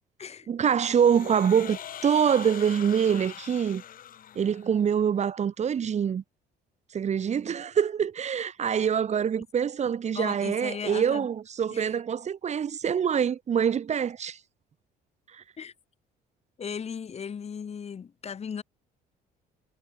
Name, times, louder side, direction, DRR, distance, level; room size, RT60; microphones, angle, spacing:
voice 1, 0.5-3.8 4.4-6.2 6.9-14.4 15.3-15.4, right 8 dB, 40° right, 2.3 m, -25 dB
sound 1, 0.8-4.9, left 10 dB, 55° left, 6.5 m, -42 dB
voice 2, 10.1-11.3 11.7-11.9 15.6-15.7 16.6-18.6, left 7 dB, 40° left, 6.9 m, -37 dB
cardioid pair, 110°, 17 cm